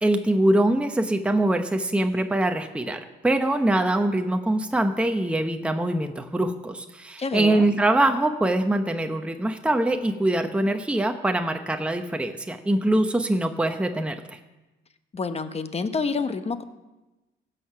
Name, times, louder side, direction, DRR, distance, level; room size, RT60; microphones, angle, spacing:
voice 1, 0.0-14.1, right 1 dB, 5° right, 6 dB, 0.8 m, -23 dB
voice 2, 7.2-7.7 15.1-16.6, left 4 dB, 30° left, 10 dB, 0.9 m, -28 dB
16.5 x 6.7 x 5.7 m, 1.1 s
cardioid pair, 90°, 20 cm